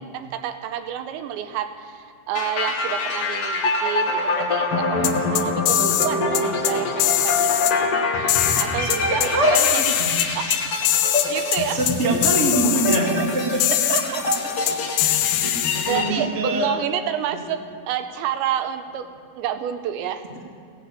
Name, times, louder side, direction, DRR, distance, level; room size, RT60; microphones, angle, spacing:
voice 1, 0.0-7.7 8.6-9.8 10.4-10.6 11.3-11.8 13.9-14.2 15.9-17.6 17.9-19.1 19.4-20.2, right 10 dB, 85° right, 9 dB, 3.0 m, -29 dB
sound 1, 2.3-16.1, left 3 dB, 75° left, 1.3 m, -25 dB
voice 2, 4.9-5.3 8.8-10.1 11.3-11.4 11.7-14.0 14.7-16.8, right 2 dB, 25° right, -2 dB, 1.7 m, -24 dB
sound 2, 5.0-6.1 6.4-6.7 7.0-7.7 8.3-9.3 9.6-10.6 10.9-11.3 11.5-11.6 11.9-12.0 12.2-13.0 13.6-14.0 14.3-14.4 14.7-16.0, left 14 dB, 90° left, 3.2 m, -21 dB
16.0 x 11.0 x 8.2 m, 2.5 s
omnidirectional pair, 5.2 m